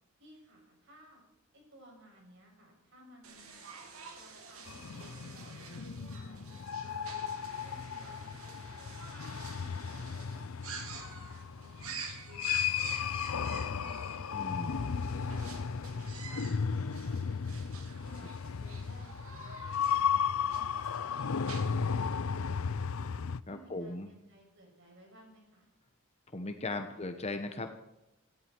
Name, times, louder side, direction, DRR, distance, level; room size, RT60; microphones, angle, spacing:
voice 1, 0.2-1.2 1.5-3.6 4.2-5.4 5.7-7.3 7.6-10.5 10.9-13.1 13.5-16.0 16.3-17.5 18.0-22.9 23.4-25.7 26.8-27.0, equal, 55° right, 0 dB, 7.3 m, -58 dB
sound 1, 3.2-22.1, right 5 dB, 75° right, 2.7 m, -49 dB
sound 2, 4.7-23.4, left 6 dB, 70° left, 0.5 m, -35 dB
voice 2, 14.3-14.8 18.2-18.3 23.5-24.1 26.3-27.7, left 2 dB, 30° left, 6 dB, 1.0 m, -38 dB
18.5 x 14.5 x 4.6 m, 0.88 s
head